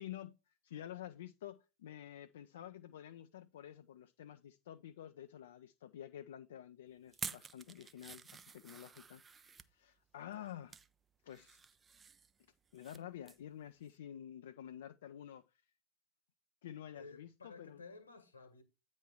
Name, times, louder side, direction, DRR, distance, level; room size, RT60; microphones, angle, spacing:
voice 1, 0.0-10.8 11.2-11.6 12.7-15.6 16.6-17.8, left 11 dB, 60° left, 0.4 m, -50 dB
sound 1, 7.1-9.7 10.3-10.9 11.3-13.0 13.3-13.5 13.9-14.0, right 5 dB, 15° right, 0.4 m, -50 dB
voice 2, 16.9-18.6, left 4 dB, 75° left, 1.5 m, -54 dB
9.0 x 3.1 x 6.3 m
figure-of-eight pair, 90°, 0 cm